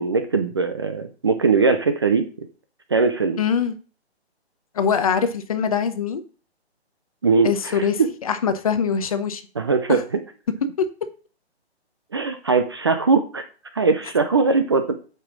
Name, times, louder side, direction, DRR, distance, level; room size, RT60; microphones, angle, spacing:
voice 1, 0.0-2.5 2.9-3.4 7.2-8.1 9.6-10.0 12.1-13.4 13.7-14.8, right 4 dB, 25° right, 8 dB, 0.5 m, -20 dB
voice 2, 3.4-3.7 4.7-6.2 7.4-9.4 9.9-10.0 10.8-10.9, left 6 dB, 35° left, 11 dB, 0.9 m, -23 dB
8.7 x 5.5 x 6.1 m, 0.38 s
hypercardioid pair, 160°, 33 cm